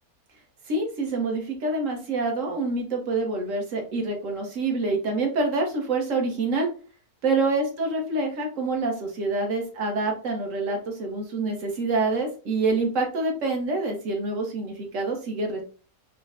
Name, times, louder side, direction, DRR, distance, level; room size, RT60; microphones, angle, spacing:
voice 1, 0.7-6.7 7.2-15.6, right 3 dB, 60° right, 2 dB, 1.3 m, -26 dB
5.4 x 2.1 x 2.4 m, 0.39 s
omnidirectional pair, 1.6 m